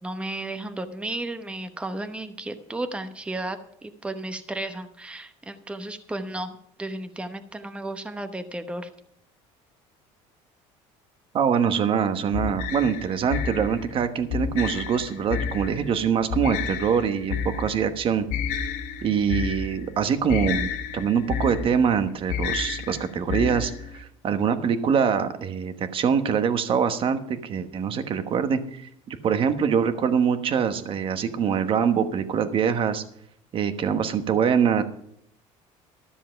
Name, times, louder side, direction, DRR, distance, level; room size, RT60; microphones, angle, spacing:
voice 1, 0.0-6.5 6.8-8.9, right 2 dB, 10° right, 8 dB, 0.9 m, -33 dB
voice 2, 11.3-18.2 19.0-33.0 33.5-34.8, right 7 dB, 40° right, 9 dB, 1.2 m, -24 dB
sound 1, 12.3-24.0, left 6 dB, 75° left, 0.8 m, -31 dB
13.0 x 7.3 x 5.8 m, 0.70 s
cardioid pair, 120°, 13 cm